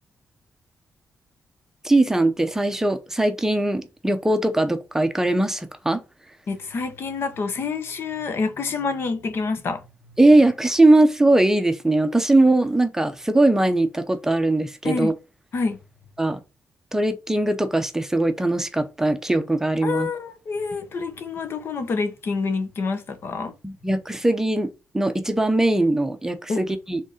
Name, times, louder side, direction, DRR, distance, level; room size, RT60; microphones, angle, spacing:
voice 1, 1.8-6.0 10.2-15.1 16.2-16.4 16.9-20.1 23.6-24.7 24.9-27.0, right 2 dB, 10° right, 0.8 m, -20 dB
voice 2, 6.5-9.8 14.8-15.1 15.5-15.8 19.8-23.5 26.5-26.6, left 4 dB, 60° left, 1.2 m, -27 dB
5.2 x 3.7 x 4.9 m
cardioid pair, 110°, 5 cm